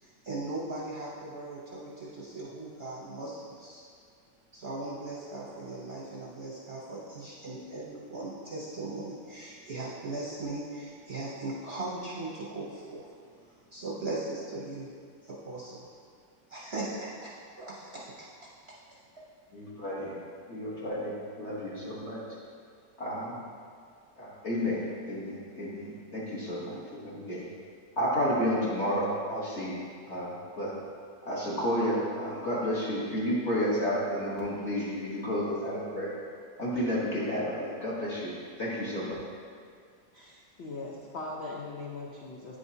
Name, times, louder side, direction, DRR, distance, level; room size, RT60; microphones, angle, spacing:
voice 1, 0.0-3.8 4.5-13.1 13.5-14.9 15.2-15.9 16.5-18.3, right 2 dB, 45° right, -7 dB, 0.8 m, -38 dB
voice 2, 19.5-20.2 20.5-22.2 23.0-23.4 24.2-26.8 27.0-27.5 28.0-29.8 30.1-30.3 30.6-30.7 31.3-36.2 36.6-38.3 38.6-39.1, equal, 45° left, -7 dB, 1.2 m, -31 dB
voice 3, 40.1-42.6, left 3 dB, 85° left, -4 dB, 0.5 m, -40 dB
9.4 x 5.1 x 2.7 m, 2.2 s
omnidirectional pair, 2.0 m